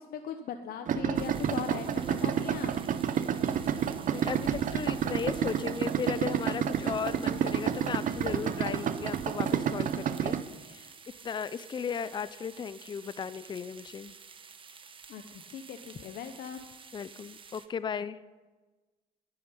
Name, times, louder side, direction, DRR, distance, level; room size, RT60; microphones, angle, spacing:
voice 1, 0.0-2.8 15.1-16.6, left 8 dB, 65° left, 7 dB, 0.9 m, -39 dB
Idling, 0.9-10.4, right 8 dB, 50° right, 0.8 m, -30 dB
sound 1, 1.1-17.7, right 5 dB, 30° right, 1.1 m, -51 dB
voice 2, 4.1-10.4 10.7-10.9 11.2-14.1 16.9-18.2, left 6 dB, 25° left, 16 dB, 0.5 m, -36 dB
11.5 x 9.1 x 9.7 m, 1.3 s
cardioid pair, 110°, 17 cm